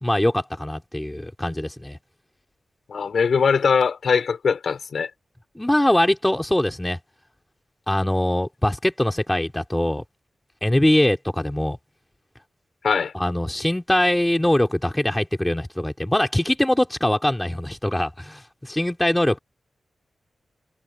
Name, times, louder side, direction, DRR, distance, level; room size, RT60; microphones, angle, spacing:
voice 1, 0.0-2.0 5.5-7.0 7.9-10.0 10.6-11.8 13.1-19.4, left 1 dB, 10° left, 3.0 m, -22 dB
voice 2, 2.9-5.1 12.8-13.1, left 6 dB, 70° left, 5.6 m, -21 dB
wide cardioid pair, 95°, 0 cm